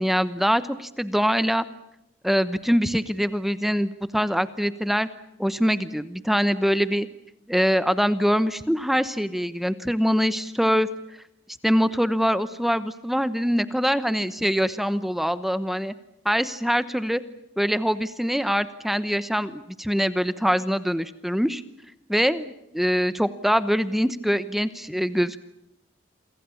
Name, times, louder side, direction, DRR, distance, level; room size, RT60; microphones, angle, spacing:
voice 1, 0.0-1.7 2.2-5.1 5.4-7.1 7.5-10.9 11.6-15.9 16.2-17.2 17.6-21.6 22.1-25.4, equal, ahead, 13 dB, 0.9 m, -23 dB
28.5 x 24.0 x 7.1 m, 0.86 s
head